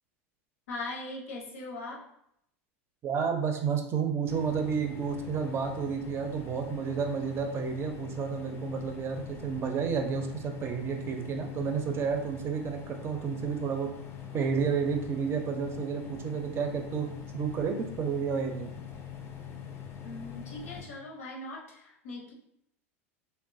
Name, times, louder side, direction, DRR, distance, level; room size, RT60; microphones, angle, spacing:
voice 1, 0.7-2.0 20.0-22.3, left 2 dB, 85° left, -2 dB, 0.7 m, -40 dB
voice 2, 3.0-13.9 14.3-17.1 17.3-18.7, right 6 dB, 35° right, 5 dB, 0.5 m, -31 dB
sound 1, 4.3-20.9, left 8 dB, 35° left, 0.4 m, -43 dB
3.0 x 2.1 x 2.5 m, 0.74 s
hypercardioid pair, 100°, 7 cm